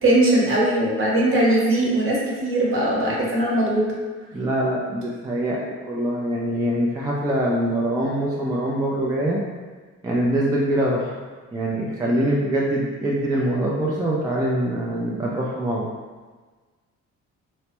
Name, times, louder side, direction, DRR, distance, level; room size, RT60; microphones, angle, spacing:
voice 1, 0.0-3.9, right 1 dB, 45° right, -4 dB, 1.0 m, -20 dB
voice 2, 4.3-5.6 5.9-9.4 10.0-11.1 11.5-15.9, right 1 dB, 10° right, -4 dB, 0.3 m, -23 dB
3.1 x 2.1 x 2.9 m, 1.4 s
cardioid pair, 90°, 30 cm